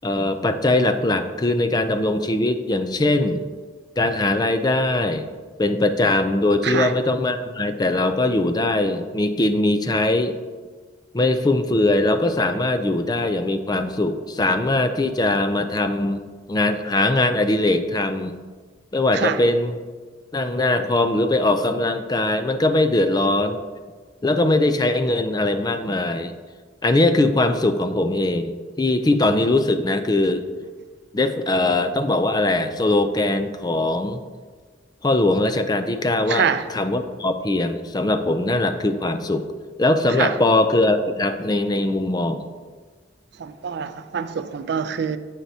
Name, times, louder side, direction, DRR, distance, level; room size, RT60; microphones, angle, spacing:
voice 1, 0.0-3.4 4.0-5.3 5.6-10.4 11.1-16.2 16.5-18.3 18.9-19.8 20.3-23.6 24.2-26.3 26.8-30.4 31.1-34.2 35.0-39.4 39.8-42.4, left 2 dB, 20° left, 0.4 m, -21 dB
voice 2, 36.3-36.7 40.2-40.3 43.4-45.2, right 7 dB, 65° right, 0.4 m, -25 dB
9.2 x 8.2 x 2.8 m
head